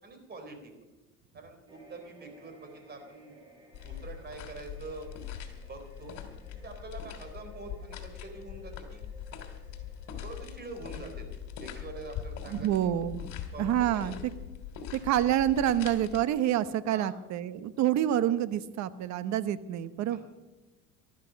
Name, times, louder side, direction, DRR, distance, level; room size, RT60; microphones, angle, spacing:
voice 1, 0.0-0.7 1.3-3.4 3.8-5.1 5.7-6.1 6.5-9.0 10.2-11.3 11.6-12.9 13.5-14.1 16.9-17.1 20.1-20.2, right 3 dB, 30° right, 6 dB, 4.0 m, -45 dB
sound 1, 1.7-16.3 16.6-16.8, right 1 dB, 15° right, 5.3 m, -59 dB
sound 2, 3.7-16.2, left 8 dB, 65° left, 3.0 m, -42 dB
voice 2, 12.5-13.3 13.6-14.1 15.0-20.2, right 11 dB, 60° right, 14 dB, 1.0 m, -27 dB
18.5 x 13.0 x 5.3 m, 1.1 s
cardioid pair, 110°, 31 cm